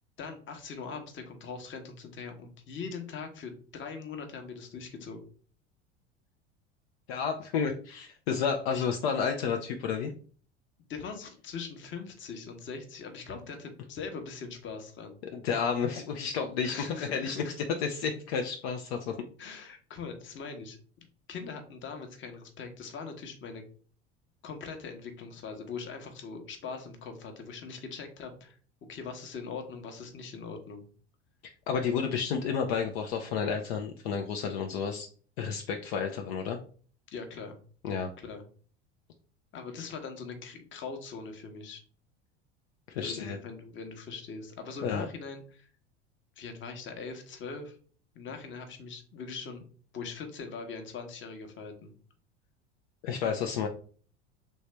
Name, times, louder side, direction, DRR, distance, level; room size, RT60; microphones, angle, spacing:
voice 1, 0.2-5.2 8.7-8.8 10.9-15.2 16.6-17.5 19.4-20.8 21.3-23.6 24.4-28.6 28.9-30.9 37.1-37.6 38.2-38.4 39.5-41.8 43.0-45.7 46.4-47.8 48.1-49.6 49.9-51.9, left 5 dB, 35° left, 6 dB, 0.9 m, -41 dB
voice 2, 7.1-10.1 15.3-16.7 17.0-17.4 17.8-19.1 31.7-35.1 35.4-36.6 37.8-38.1 42.9-43.4 44.8-45.1 53.0-53.7, left 6 dB, 65° left, 4 dB, 0.5 m, -31 dB
3.2 x 2.6 x 3.3 m, 0.43 s
hypercardioid pair, 80°, 34 cm